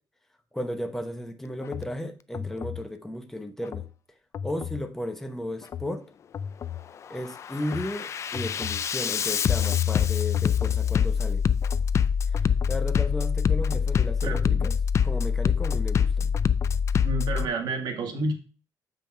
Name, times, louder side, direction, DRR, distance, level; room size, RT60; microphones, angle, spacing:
voice 1, 0.5-3.9 4.4-6.0 7.1-11.4 12.3-14.8 15.0-16.3, left 1 dB, 5° left, 0.8 m, -34 dB
Bass drum, 1.6-1.9 2.3-2.8 3.6-3.9 4.3-4.8 5.6-5.9 6.3-6.8 7.3-17.5, left 7 dB, 40° left, 0.3 m, -25 dB
voice 2, 14.2-14.6 17.0-18.3, right 2 dB, 65° right, 1.9 m, -30 dB
7.6 x 5.3 x 4.5 m
cardioid pair, 145°, 8 cm